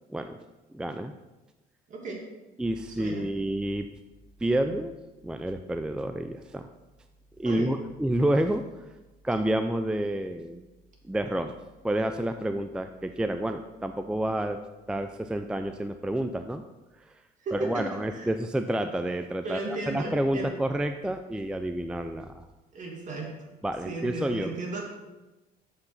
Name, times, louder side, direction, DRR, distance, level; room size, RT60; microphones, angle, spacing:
voice 1, 0.7-1.1 2.6-3.9 4.4-4.9 5.2-6.7 7.4-8.6 9.2-10.7 11.1-11.6 11.8-14.6 14.9-16.6 17.5-22.4 23.6-24.5, right 1 dB, 5° right, 8 dB, 0.3 m, -29 dB
voice 2, 1.9-2.2 2.9-3.3 4.7-4.8 7.4-7.7 17.4-18.3 19.4-20.5 22.7-23.3 23.8-24.8, right 2 dB, 50° right, 0 dB, 2.3 m, -35 dB
6.6 x 6.0 x 5.7 m, 1.1 s
cardioid pair, 110°, 17 cm